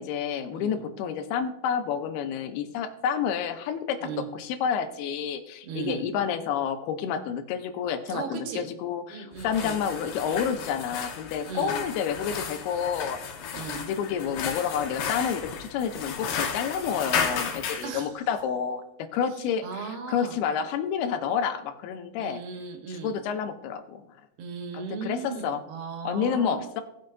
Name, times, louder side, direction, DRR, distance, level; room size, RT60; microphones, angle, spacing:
voice 1, 0.0-4.0 4.3-13.2 13.8-22.4 22.9-24.1 24.7-25.6 26.0-26.8, left 7 dB, 90° left, 8 dB, 2.8 m, -29 dB
voice 2, 5.6-6.0 8.1-8.7 9.1-9.8 11.4-11.8 13.5-13.8 17.8-18.1 19.6-20.4 22.2-23.1 24.4-26.6, right 5 dB, 85° right, 4 dB, 3.3 m, -36 dB
sound 1, 9.3-17.9, left 6 dB, 70° left, 2.6 m, -33 dB
18.5 x 6.4 x 2.6 m, 0.86 s
omnidirectional pair, 4.4 m